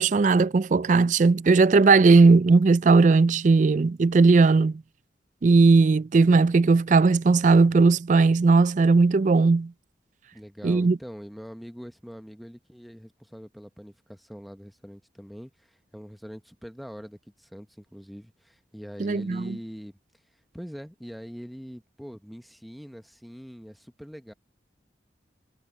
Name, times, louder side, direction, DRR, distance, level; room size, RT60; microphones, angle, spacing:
voice 1, 0.0-4.8 5.4-9.7 10.6-11.0 19.0-19.6, right 4 dB, 45° right, 0.4 m, -18 dB
voice 2, 10.3-20.0 20.5-24.3, equal, ahead, 0.9 m, -43 dB
head